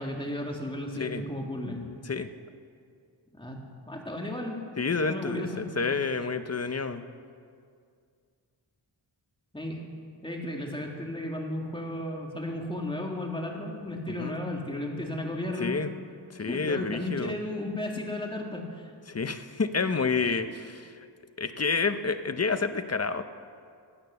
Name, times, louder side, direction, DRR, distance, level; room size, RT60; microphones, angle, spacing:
voice 1, 0.0-1.8 3.4-3.6 3.9-4.6 5.1-5.7 9.5-9.8 10.2-15.8 16.4-18.9, left 1 dB, 10° left, 0 dB, 2.0 m, -34 dB
voice 2, 4.8-7.0 14.2-14.3 15.6-15.9 16.3-17.3 19.1-20.9 21.4-23.2, left 4 dB, 35° left, 10 dB, 0.7 m, -29 dB
15.5 x 8.9 x 6.8 m, 2.2 s
wide cardioid pair, 90°, 44 cm